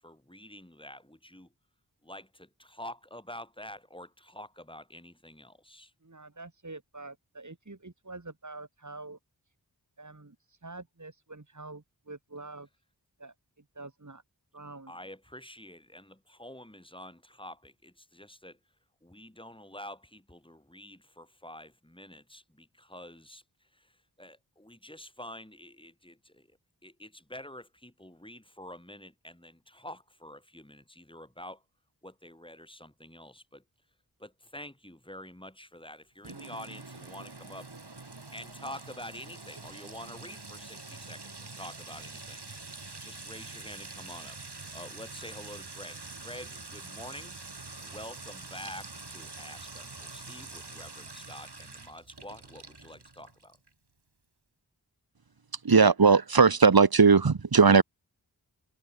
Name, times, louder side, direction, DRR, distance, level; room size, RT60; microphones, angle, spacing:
voice 1, 0.0-1.5 2.0-5.9 14.9-18.6 19.0-31.6 32.0-33.6 34.2-37.7 38.3-42.4 43.0-44.4 44.7-47.4 47.8-53.6, left 1 dB, 10° left, 7.0 m, -47 dB
voice 2, 6.0-9.2 10.0-12.7 13.2-14.2 14.5-14.9, right 3 dB, 45° right, 3.0 m, -46 dB
Sink (filling or washing) / Trickle dribble / Fill (with liquid), 36.2-53.7, right 3 dB, 80° right, 6.8 m, -45 dB
voice 3, 55.6-57.8, right 5 dB, 60° right, 1.3 m, -18 dB
wide cardioid pair, 50°, 40 cm